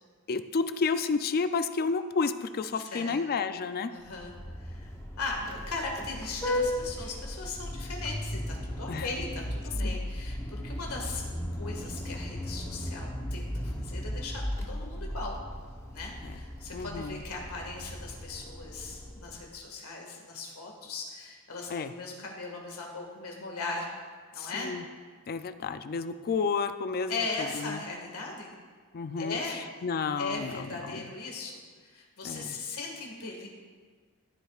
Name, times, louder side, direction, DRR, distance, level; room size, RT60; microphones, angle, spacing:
voice 1, 0.3-3.9 8.9-9.1 9.8-10.0 16.7-17.2 21.7-21.9 24.4-24.8 25.3-27.2 27.6-27.8 28.9-29.4 29.8-30.5 32.2-32.6, left 4 dB, 45° left, 11 dB, 0.4 m, -30 dB
voice 2, 2.7-3.4 3.9-4.9 5.2-11.2 11.6-15.3 15.9-23.9 24.3-24.7 27.1-28.6 29.2-29.6 30.2-33.5, left 3 dB, 75° left, 0 dB, 1.8 m, -38 dB
Vehicle horn car horn honking, 4.0-19.4, left 1 dB, 15° left, 0.9 m, -36 dB
14.5 x 7.9 x 2.4 m, 1.5 s
head